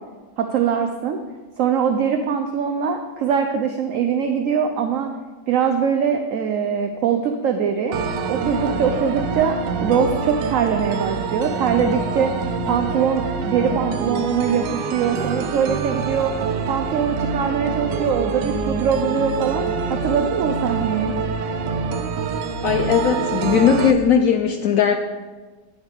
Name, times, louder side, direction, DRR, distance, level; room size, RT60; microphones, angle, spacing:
voice 1, 0.4-1.2 1.6-5.1 5.5-8.0 8.3-12.3 12.6-16.3 16.7-19.6 19.9-21.1, right 7 dB, 65° right, 6 dB, 0.8 m, -22 dB
sound 1, 7.9-23.9, right 5 dB, 80° right, 1.3 m, -26 dB
voice 2, 22.6-25.0, left 7 dB, 70° left, 6 dB, 0.8 m, -18 dB
9.3 x 8.8 x 3.5 m, 1.3 s
omnidirectional pair, 1.8 m